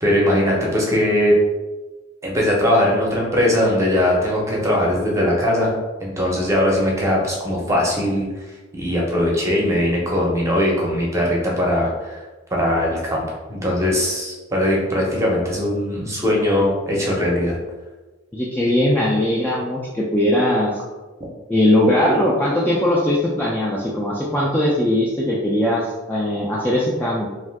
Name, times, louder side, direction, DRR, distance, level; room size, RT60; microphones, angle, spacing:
voice 1, 0.0-1.3 2.2-5.7 6.0-8.3 8.7-12.2 12.5-13.2 13.5-17.5, left 1 dB, 15° right, -3 dB, 0.7 m, -20 dB
voice 2, 18.3-20.7 21.5-27.3, left 1 dB, 10° left, -5 dB, 0.3 m, -20 dB
2.6 x 2.3 x 3.4 m, 1.2 s
head